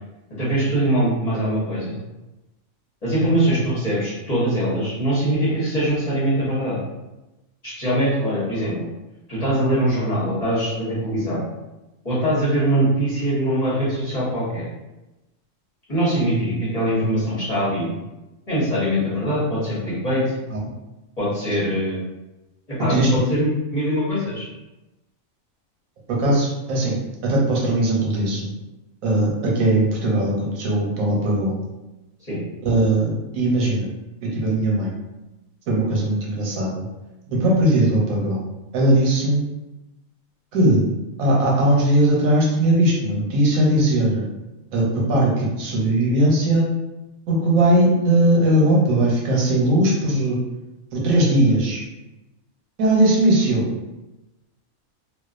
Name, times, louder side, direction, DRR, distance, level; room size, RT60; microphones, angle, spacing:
voice 1, 0.4-2.0 3.0-6.8 7.6-8.8 9.3-11.4 12.0-14.7 15.9-17.9 18.5-20.2 21.2-22.0 22.7-24.5 32.3-32.4, right 1 dB, 30° left, -10 dB, 0.9 m, -22 dB
voice 2, 22.9-23.3 26.1-27.0 27.2-28.5 29.0-31.6 32.6-33.9 34.3-34.9 35.7-36.9 37.3-38.4 38.7-39.4 40.5-40.8 41.2-44.2 44.7-46.6 47.3-50.4 50.9-51.8 52.8-53.7, right 1 dB, 85° right, -3 dB, 1.1 m, -19 dB
2.4 x 2.2 x 2.4 m, 1.0 s
omnidirectional pair, 1.4 m